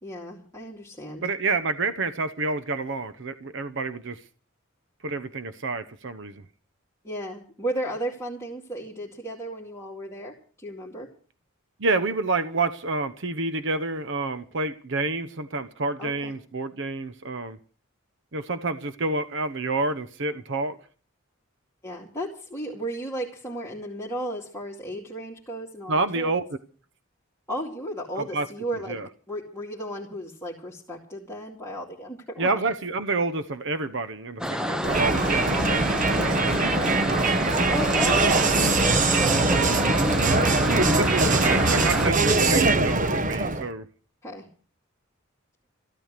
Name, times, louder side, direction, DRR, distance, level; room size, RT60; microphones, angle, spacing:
voice 1, 0.0-1.2 7.0-11.1 16.0-16.3 21.8-26.3 27.5-29.0 29.3-32.5 37.7-40.6 44.2-44.5, right 1 dB, 15° left, -5 dB, 2.3 m, -35 dB
voice 2, 1.2-4.2 5.0-6.4 11.8-17.6 18.3-20.8 25.9-26.4 28.2-28.5 28.9-29.1 32.4-37.0 41.0-43.8, right 3 dB, 60° right, 12 dB, 0.9 m, -28 dB
sound 1, 34.4-42.1, equal, 5° right, 0.8 m, -28 dB
Crowd, 34.8-43.7, right 3 dB, 40° right, 1.1 m, -22 dB
14.5 x 12.5 x 6.7 m, 0.40 s
head